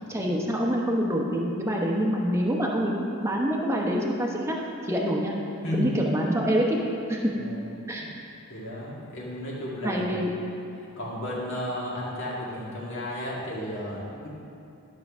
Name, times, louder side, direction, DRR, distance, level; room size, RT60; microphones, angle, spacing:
voice 1, 0.1-4.6 4.8-5.4 5.7-6.8 7.1-7.3 7.9-8.0 9.8-10.3, equal, 10° right, -2 dB, 0.9 m, -26 dB
voice 2, 8.5-10.0 10.8-14.3, left 1 dB, 55° left, -5 dB, 1.9 m, -33 dB
11.5 x 6.0 x 3.6 m, 2.8 s
head